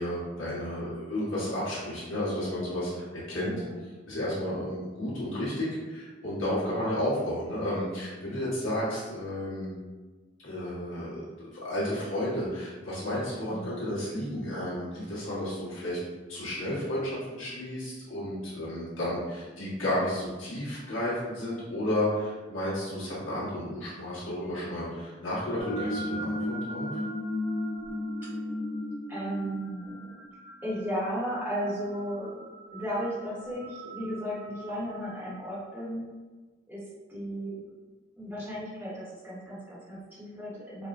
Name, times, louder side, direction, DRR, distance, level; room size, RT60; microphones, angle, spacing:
voice 1, 0.0-3.5 4.1-9.7 10.4-16.0 16.3-27.0, left 1 dB, 80° left, -9 dB, 1.5 m, -32 dB
voice 2, 3.4-3.9 6.7-6.9 13.5-13.9 28.2-28.3 29.1-30.2 30.6-32.3 32.7-36.1 36.7-36.8 37.1-37.7 38.2-40.9, equal, 10° right, -10 dB, 0.9 m, -35 dB
sound 1, 25.6-35.6, left 1 dB, 25° left, 0.7 m, -36 dB
4.2 x 2.1 x 2.5 m, 1.3 s
head